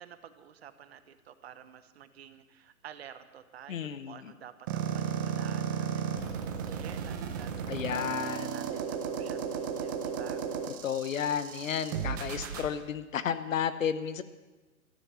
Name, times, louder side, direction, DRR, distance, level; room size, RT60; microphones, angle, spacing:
voice 1, 0.0-8.1 8.4-10.4, right 9 dB, 45° right, 11 dB, 1.1 m, -50 dB
voice 2, 3.7-4.3 7.7-8.6 10.8-14.2, left 8 dB, 65° left, 13 dB, 1.0 m, -32 dB
sound 1, 4.7-12.7, right 7 dB, 15° right, 0.6 m, -34 dB
13.5 x 12.5 x 7.0 m, 1.2 s
hypercardioid pair, 150°, 43 cm